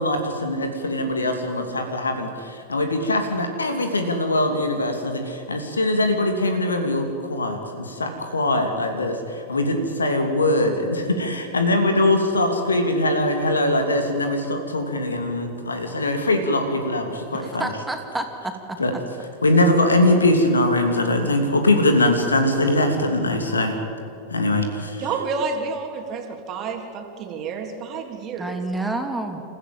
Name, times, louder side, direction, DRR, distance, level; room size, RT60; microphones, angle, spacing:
voice 1, 0.0-17.6 18.8-18.9 19.4-23.8 24.3-25.0, left 1 dB, 75° left, 6 dB, 2.8 m, -22 dB
voice 2, 17.3-18.8 28.4-29.4, right 2 dB, 5° right, 4 dB, 2.9 m, -29 dB
voice 3, 25.0-28.6, right 5 dB, 35° right, 3 dB, 3.2 m, -29 dB
28.5 x 15.0 x 9.2 m, 2.7 s
figure-of-eight pair, 90°, 0 cm